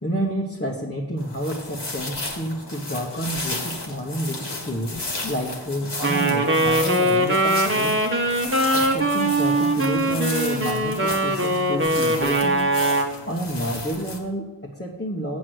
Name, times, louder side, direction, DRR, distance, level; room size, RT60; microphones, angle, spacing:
voice 1, 0.0-8.0 8.7-12.7 13.3-15.4, equal, 25° left, -3 dB, 1.2 m, -29 dB
sound 1, 1.2-14.2, left 2 dB, 65° left, 1.9 m, -34 dB
Wind instrument woodwind instrument, 6.0-13.1, right 1 dB, 25° right, 1.3 m, -21 dB
8.5 x 6.1 x 6.5 m, 1.0 s
wide cardioid pair, 50°, 45 cm